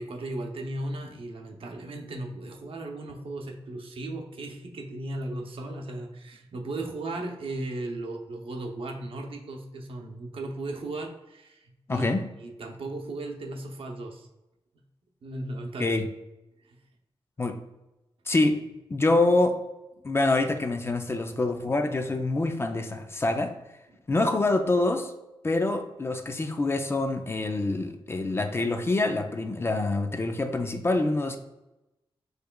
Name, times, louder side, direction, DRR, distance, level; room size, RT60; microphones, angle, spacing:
voice 1, 0.0-12.1 12.4-14.3 15.2-16.0 16.6-16.8 23.9-24.0, right 2 dB, 70° right, 2 dB, 0.7 m, -36 dB
voice 2, 11.9-12.3 15.8-16.1 17.4-17.6 18.3-18.6 18.9-19.6 20.0-23.6 24.1-25.1 25.4-31.4, left 2 dB, 25° left, 6 dB, 0.3 m, -26 dB
6.7 x 3.2 x 2.2 m, 0.95 s
wide cardioid pair, 175°, 10 cm